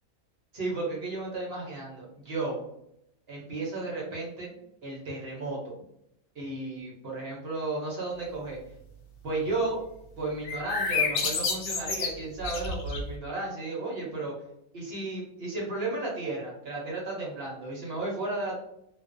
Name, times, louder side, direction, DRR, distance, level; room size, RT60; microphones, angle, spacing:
voice 1, 0.5-2.6 3.3-4.6 4.8-5.7 6.4-8.6 9.2-9.8 10.2-14.3 14.7-18.5, right 2 dB, 55° right, -3 dB, 0.7 m, -33 dB
sound 1, 10.4-13.2, left 4 dB, 85° left, 1.1 m, -29 dB
2.4 x 2.1 x 2.4 m, 0.77 s
omnidirectional pair, 1.5 m